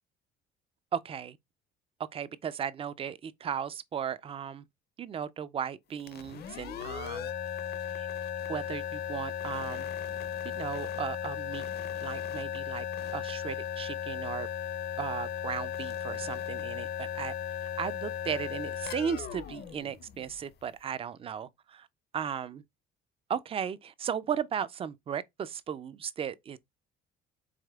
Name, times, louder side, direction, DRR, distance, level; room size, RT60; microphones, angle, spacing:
voice 1, 0.9-1.4 2.1-4.6 5.0-7.3 8.0-8.1 8.5-9.9 10.4-11.7 12.0-12.8 13.1-14.5 15.0-17.3 17.8-21.9 22.1-22.6 23.3-26.6, right 8 dB, 30° right, 0.4 m, -36 dB
sound 1, 6.0-20.6, left 9 dB, 55° left, 0.6 m, -36 dB
4.9 x 3.5 x 2.3 m
cardioid pair, 120°, 20 cm